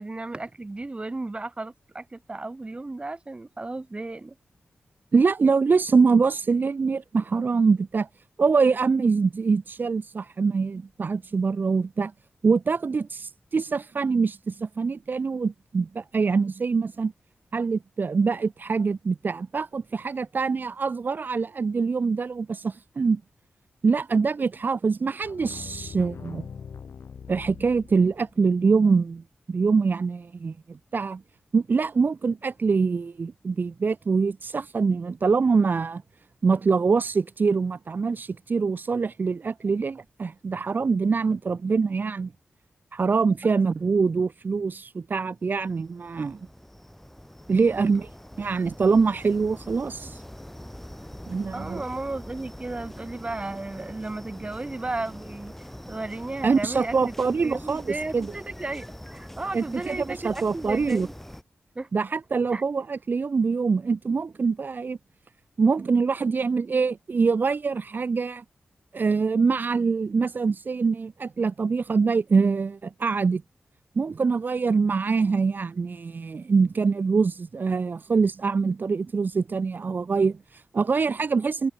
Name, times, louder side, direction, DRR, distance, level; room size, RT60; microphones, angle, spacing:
voice 1, 0.0-4.4 43.4-43.5 47.7-47.9 51.5-61.1 61.8-61.9 62.5-62.6, right 2 dB, 30° right, 1.7 m, -34 dB
voice 2, 5.1-8.1 8.4-12.1 12.4-17.1 17.5-23.2 23.8-26.5 27.3-29.2 29.5-31.2 31.5-36.0 36.4-42.3 42.9-46.4 47.5-48.1 48.4-50.2 51.3-51.8 56.4-58.3 59.5-61.1 61.9-65.0 65.6-68.4 68.9-73.4 74.0-81.7, right 4 dB, 50° right, 0.7 m, -24 dB
sound 1, 25.2-28.4, left 6 dB, 80° left, 4.6 m, -41 dB
sound 2, 45.5-61.4, equal, 5° left, 2.8 m, -43 dB
wide cardioid pair, 75°, 4 cm